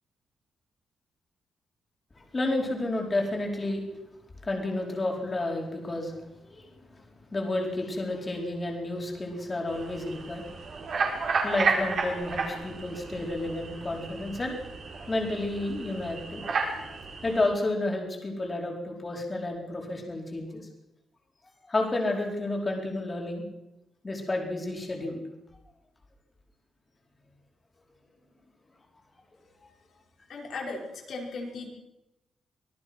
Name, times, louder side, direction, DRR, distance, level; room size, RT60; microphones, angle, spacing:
voice 1, 2.2-3.8 4.4-6.7 7.3-10.4 11.4-14.6 15.1-16.4 17.2-20.6 21.7-23.4 24.0-25.2, left 2 dB, 20° left, 0 dB, 4.6 m, -31 dB
sound 1, 9.7-17.5, right 4 dB, 50° right, 5.4 m, -32 dB
voice 2, 30.3-31.7, left 3 dB, 60° left, 0 dB, 5.6 m, -37 dB
25.0 x 18.0 x 6.2 m, 0.93 s
wide cardioid pair, 150°, 0 cm